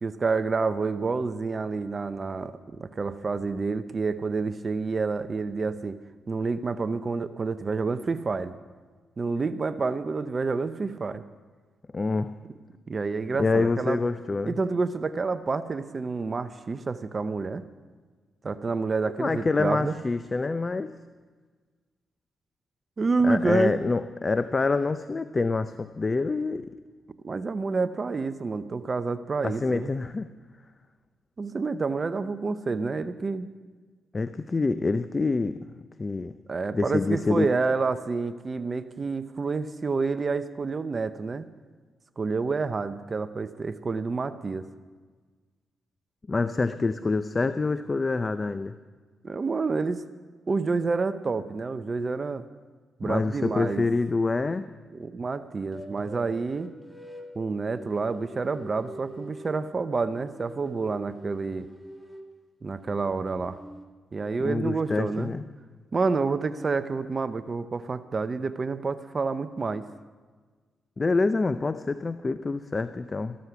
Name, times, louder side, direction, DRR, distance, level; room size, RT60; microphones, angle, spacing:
voice 1, 0.0-6.0 6.3-8.5 9.2-11.2 12.9-14.0 14.5-17.6 18.4-20.0 23.0-23.7 27.2-29.9 31.4-33.5 36.5-41.5 42.2-44.6 49.2-50.0 50.5-52.4 53.0-53.8 54.9-56.7 57.3-61.7 62.6-63.6 64.1-65.3 65.9-69.9, right 4 dB, 40° right, 12 dB, 0.7 m, -28 dB
voice 2, 11.9-12.3 13.4-14.6 19.2-20.9 23.2-26.7 29.4-30.3 34.1-35.6 36.0-36.4 36.7-37.5 46.3-48.7 53.0-54.7 64.4-65.4 71.0-73.4, left 3 dB, 35° left, 11 dB, 0.6 m, -26 dB
sound 1, 55.7-57.3 57.7-59.7 60.0-62.3 62.8-63.8, right 1 dB, 5° left, 2.1 m, -45 dB
14.0 x 13.0 x 5.8 m, 1.4 s
supercardioid pair, 60°, 0 cm